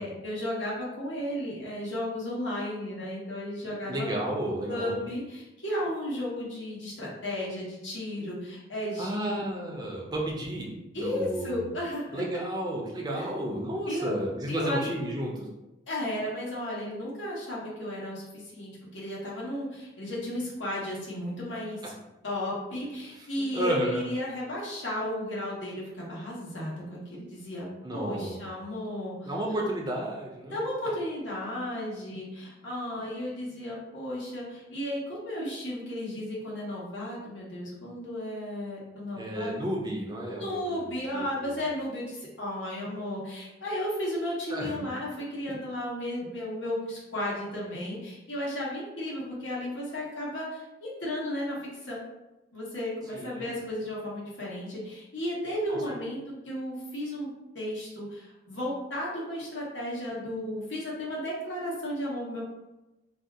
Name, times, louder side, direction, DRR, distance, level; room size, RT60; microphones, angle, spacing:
voice 1, 0.0-4.1 4.7-9.4 10.9-12.2 13.1-13.3 13.8-14.1 14.5-14.8 15.9-21.9 22.2-29.3 30.5-39.5 40.3-52.0 52.5-56.2 56.4-57.3 57.5-62.4, left 1 dB, 80° left, -5 dB, 1.1 m, -34 dB
voice 2, 3.6-5.0 9.0-11.7 12.1-15.5 23.1-23.3 23.5-24.1 27.8-28.4 29.3-30.6 39.2-41.6 44.5-44.9 53.1-53.5 55.7-55.9, right 1 dB, 20° right, -2 dB, 0.5 m, -32 dB
2.7 x 2.3 x 3.5 m, 1.0 s
head